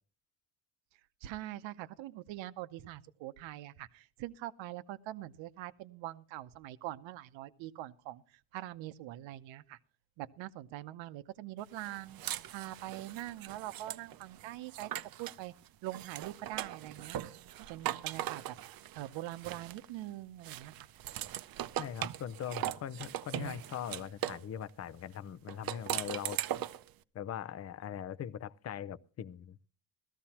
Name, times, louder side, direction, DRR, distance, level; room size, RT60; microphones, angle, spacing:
voice 1, 1.2-9.8 10.2-14.9 15.2-15.5 15.8-17.3 17.7-18.6 18.9-20.9, right 15 dB, 80° right, 0.9 m, -43 dB
sound 1, 11.8-15.4 15.9-20.0 20.4-24.5 25.5-26.9, right 13 dB, 50° right, 0.6 m, -40 dB
voice 2, 21.8-26.4 27.1-29.7, left 9 dB, 35° left, 0.6 m, -41 dB
17.5 x 14.0 x 2.9 m
cardioid pair, 130°, 44 cm